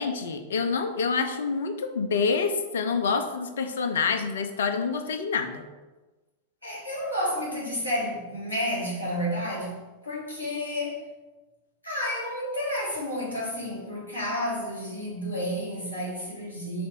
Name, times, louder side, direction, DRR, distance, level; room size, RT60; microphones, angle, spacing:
voice 1, 0.0-5.6, left 5 dB, 65° left, 7 dB, 0.6 m, -27 dB
voice 2, 6.6-11.0 11.8-16.9, equal, 90° right, -5 dB, 2.1 m, -31 dB
5.1 x 4.1 x 5.3 m, 1.2 s
figure-of-eight pair, 90°, 0 cm